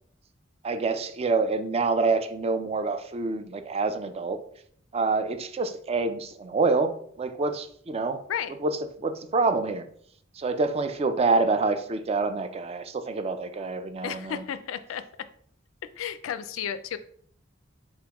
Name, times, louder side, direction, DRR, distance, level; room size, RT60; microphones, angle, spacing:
voice 1, 0.6-4.4 4.9-8.2 8.6-9.8 10.4-14.4, right 3 dB, 30° right, 9 dB, 0.4 m, -27 dB
voice 2, 14.0-15.0 16.0-17.0, left 8 dB, 90° left, 13 dB, 0.4 m, -33 dB
4.2 x 3.5 x 2.9 m, 0.62 s
head